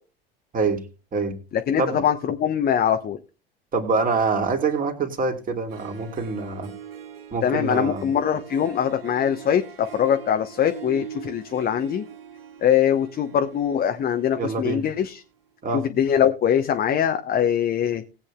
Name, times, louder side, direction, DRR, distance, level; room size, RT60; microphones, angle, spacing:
voice 1, 1.5-3.2 7.4-12.0 12.6-15.2 15.7-18.0, left 9 dB, 30° left, 7 dB, 1.0 m, -22 dB
voice 2, 3.7-6.7 7.3-8.1 14.4-14.8 15.6-15.8, right 4 dB, 25° right, 4 dB, 2.5 m, -25 dB
Harp, 5.4-5.5 5.7-15.2, right 9 dB, 75° right, 1.4 m, -42 dB
19.5 x 8.2 x 2.3 m, 0.32 s
figure-of-eight pair, 80°, 30 cm